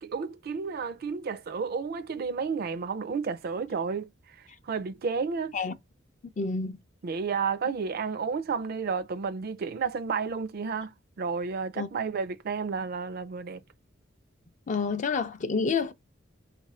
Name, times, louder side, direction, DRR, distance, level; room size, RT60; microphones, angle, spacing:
voice 1, 0.0-4.1 4.6-5.5 7.0-13.6, right 5 dB, 50° right, 0.4 m, -31 dB
voice 2, 6.4-6.8 11.8-11.9 14.7-15.9, left 4 dB, 40° left, 0.4 m, -28 dB
4.7 x 2.5 x 4.1 m
head